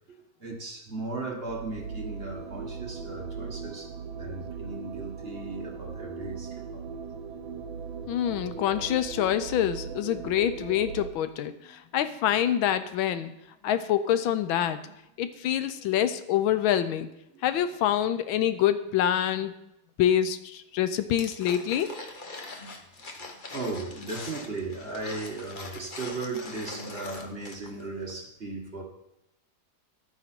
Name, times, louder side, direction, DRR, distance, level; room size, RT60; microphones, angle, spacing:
voice 1, 0.4-6.8 9.9-10.0 11.5-12.4 13.1-13.3 13.6-13.7 14.8-14.9 15.7-15.8 17.3-17.4 22.6-22.7 23.1-28.8, right 3 dB, 30° right, 0 dB, 1.6 m, -37 dB
sound 1, 1.5-11.1, right 5 dB, 85° right, 1.5 m, -39 dB
voice 2, 8.1-11.5 11.9-13.3 13.6-14.8 15.2-17.1 17.4-19.6 20.0-21.9, left 10 dB, 90° left, 12 dB, 1.5 m, -26 dB
sound 2, 21.2-27.8 28.1-28.2, left 3 dB, 35° left, 0.9 m, -42 dB
11.5 x 9.1 x 4.4 m, 0.86 s
omnidirectional pair, 2.1 m